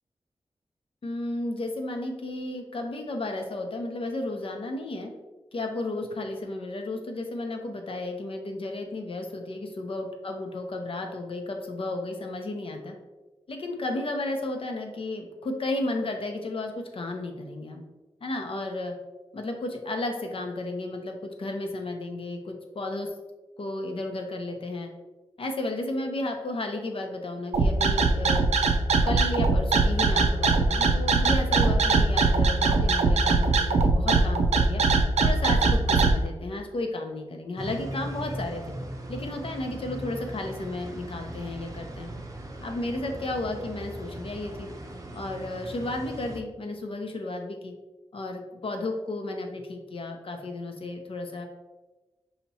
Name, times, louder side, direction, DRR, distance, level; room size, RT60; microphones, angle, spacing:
voice 1, 1.0-5.1 5.5-12.9 13.5-17.8 18.2-18.9 19.3-23.1 23.6-24.9 25.4-28.5 29.0-34.8 35.2-38.8 39.1-42.1 42.6-44.7 45.1-47.7 48.1-51.5, left 2 dB, 55° left, 3 dB, 0.7 m, -33 dB
sound 1, 27.5-36.1, right 4 dB, 85° right, 0.4 m, -21 dB
sound 2, 37.6-46.4, right 1 dB, 30° right, 0.6 m, -39 dB
5.6 x 2.9 x 2.8 m, 1.1 s
wide cardioid pair, 90°, 11 cm